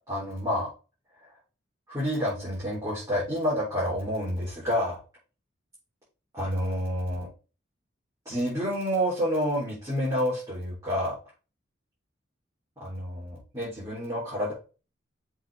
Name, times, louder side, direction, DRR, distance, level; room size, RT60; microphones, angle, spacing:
voice 1, 0.1-0.7 1.9-5.0 6.3-7.3 8.3-11.2 12.8-14.5, equal, 15° right, -10 dB, 3.7 m, -29 dB
7.1 x 4.5 x 3.7 m, 0.33 s
head